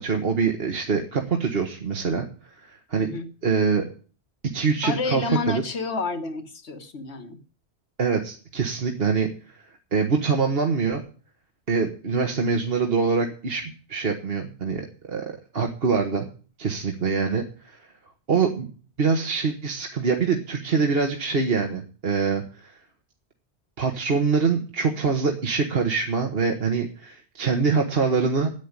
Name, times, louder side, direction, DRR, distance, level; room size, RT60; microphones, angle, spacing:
voice 1, 0.0-3.1 3.4-3.8 4.5-5.6 8.0-9.6 9.9-11.0 11.7-13.6 13.9-15.2 15.5-16.3 16.6-17.9 18.3-18.7 19.0-22.8 23.8-28.5, right 5 dB, 60° right, 3 dB, 1.6 m, -24 dB
voice 2, 4.8-7.4, left 3 dB, 75° left, 8 dB, 1.8 m, -29 dB
10.0 x 8.6 x 9.7 m, 0.39 s
omnidirectional pair, 1.1 m